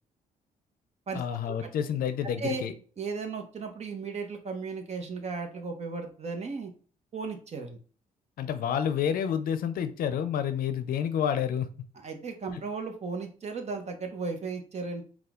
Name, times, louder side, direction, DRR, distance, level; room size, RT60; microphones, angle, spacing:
voice 1, 1.1-2.7 8.4-11.7, left 8 dB, 75° left, 10 dB, 0.6 m, -29 dB
voice 2, 3.0-6.7 7.1-7.8 11.9-15.0, right 4 dB, 45° right, 4 dB, 1.1 m, -35 dB
4.2 x 2.4 x 3.7 m, 0.40 s
cardioid pair, 80°, 15 cm